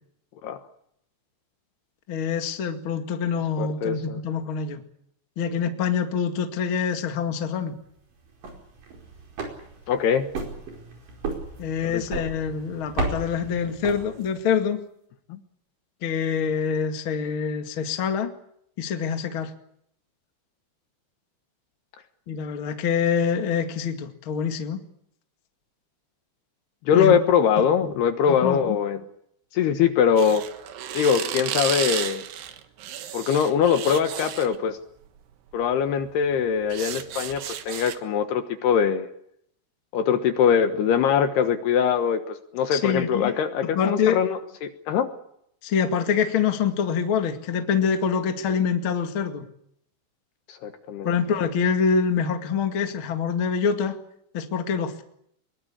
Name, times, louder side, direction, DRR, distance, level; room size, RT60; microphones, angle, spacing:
voice 1, 2.1-4.8 5.4-7.7 11.6-14.8 16.0-18.3 18.8-19.5 22.3-24.8 26.9-27.1 27.6-28.0 28.3-28.8 42.7-43.4 43.7-44.2 45.6-49.4 51.0-54.0 54.3-55.0, left 6 dB, 45° left, 6 dB, 1.8 m, -25 dB
voice 2, 3.6-4.2 9.9-10.3 11.9-12.0 15.3-15.4 26.9-29.1 29.5-30.4 30.9-32.2 33.1-34.8 35.5-39.1 39.9-45.1 50.5-51.1, left 7 dB, 70° left, 9 dB, 3.0 m, -22 dB
sound 1, 8.2-14.5, right 3 dB, 45° right, 6.2 m, -34 dB
sound 2, 30.2-34.6 35.5-35.7 36.1-38.0, right 10 dB, 65° right, 3.3 m, -33 dB
23.5 x 22.0 x 8.7 m, 0.72 s
omnidirectional pair, 5.5 m